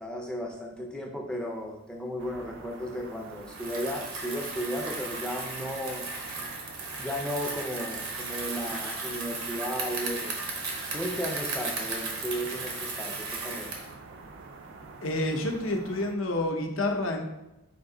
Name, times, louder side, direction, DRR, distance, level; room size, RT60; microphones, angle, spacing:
voice 1, 0.0-6.1 6.4-6.5 7.0-10.3 10.9-13.7, equal, 5° left, 1 dB, 0.4 m, -35 dB
sound 1, 2.2-16.2, right 3 dB, 55° right, 0.4 m, -47 dB
Bicycle, 3.4-13.9, right 3 dB, 80° right, 0.9 m, -35 dB
voice 2, 15.0-17.2, left 1 dB, 65° left, 4 dB, 0.6 m, -29 dB
5.1 x 2.6 x 3.7 m, 0.94 s
head